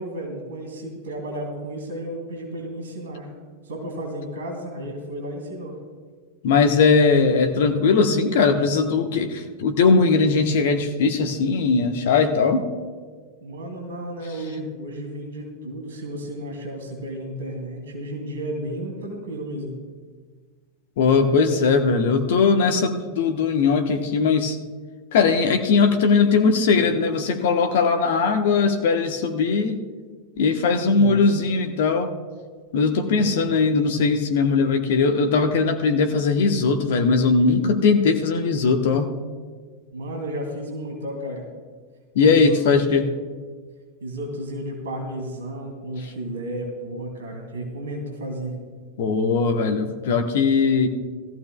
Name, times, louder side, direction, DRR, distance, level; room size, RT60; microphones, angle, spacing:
voice 1, 0.0-3.3 3.6-5.8 13.4-19.7 26.7-26.9 30.8-31.2 33.1-33.4 39.9-41.4 42.2-42.6 42.8-43.1 44.0-48.5, right 1 dB, 65° right, 1 dB, 2.7 m, -33 dB
voice 2, 6.4-12.7 21.0-24.6 25.1-29.8 30.4-32.1 32.7-39.2 42.1-43.1 49.0-50.9, left 4 dB, 55° left, 6 dB, 1.0 m, -19 dB
18.5 x 14.5 x 2.3 m, 1.5 s
figure-of-eight pair, 90°, 0 cm